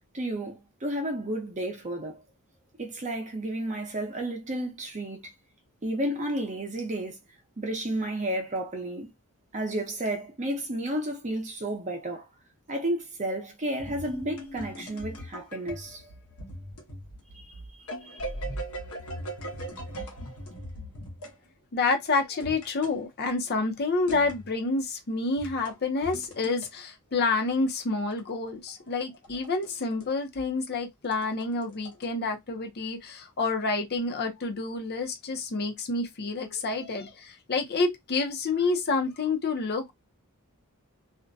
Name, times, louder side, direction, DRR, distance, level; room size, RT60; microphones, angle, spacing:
voice 1, 0.1-2.2 2.8-5.3 5.8-7.2 7.6-9.1 9.5-12.3 12.7-16.0 17.3-17.4 18.1-18.2, right 1 dB, 35° right, 0.7 m, -32 dB
sound 1, 13.8-21.4 22.4-23.0 24.1-24.5 25.3-26.7 28.1-30.1 30.4-30.5 31.0-32.1, right 1 dB, 85° left, 0.9 m, -39 dB
voice 2, 21.7-39.9, left 3 dB, 50° left, 0.6 m, -28 dB
2.5 x 2.1 x 2.5 m
head